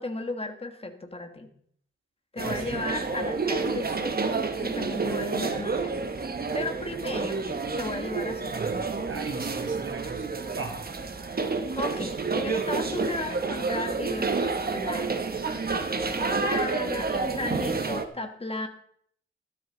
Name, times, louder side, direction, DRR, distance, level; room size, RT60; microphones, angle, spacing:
voice 1, 0.0-1.5 2.3-6.2 6.5-7.4 7.8-8.5 11.8-18.7, left 2 dB, 30° left, 1.6 m, -35 dB
sound 1, 2.4-18.1, right 4 dB, 50° right, 1.1 m, -29 dB
voice 2, 2.5-2.8 8.5-8.8 9.1-10.3 10.5-10.8, right 4 dB, 80° right, 2.3 m, -38 dB
13.5 x 12.5 x 3.9 m
wide cardioid pair, 120°, 21 cm